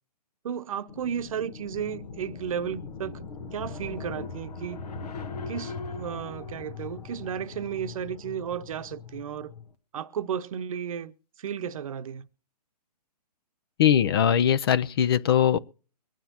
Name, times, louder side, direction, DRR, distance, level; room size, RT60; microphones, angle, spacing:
voice 1, 0.4-3.2 3.5-4.8 5.5-9.5 9.9-11.1 11.4-12.3, right 8 dB, 55° right, 0.8 m, -33 dB
sound 1, 0.9-9.7, left 4 dB, 70° left, 1.5 m, -40 dB
voice 2, 13.8-15.6, left 9 dB, 35° left, 0.5 m, -21 dB
23.5 x 9.0 x 2.9 m
hypercardioid pair, 150°, 21 cm